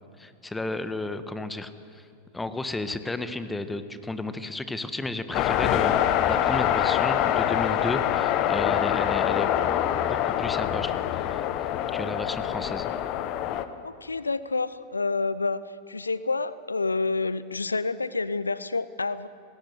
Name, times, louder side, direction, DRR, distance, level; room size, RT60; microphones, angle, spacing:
voice 1, 0.2-2.0 2.3-9.5 10.1-11.4 11.9-12.9, left 2 dB, 10° left, 11 dB, 1.5 m, -33 dB
sound 1, 5.3-13.6, left 11 dB, 40° left, 1.3 m, -25 dB
voice 2, 13.8-19.3, left 3 dB, 80° left, 17 dB, 0.6 m, -28 dB
29.0 x 20.0 x 7.9 m, 2.4 s
figure-of-eight pair, 90°, 0 cm